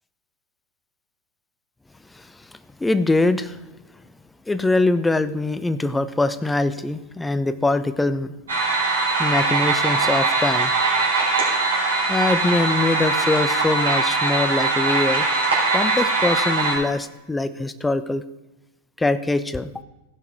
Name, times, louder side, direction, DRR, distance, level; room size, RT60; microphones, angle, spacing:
voice 1, 2.1-2.4 2.8-3.6 4.5-8.3 9.2-10.7 12.1-15.3 15.7-18.2 19.0-19.7, left 2 dB, 10° left, 13 dB, 0.5 m, -23 dB
sound 1, 8.5-16.8, right 3 dB, 70° right, 3.2 m, -21 dB
15.5 x 5.8 x 4.7 m, 0.97 s
figure-of-eight pair, 90°, 0 cm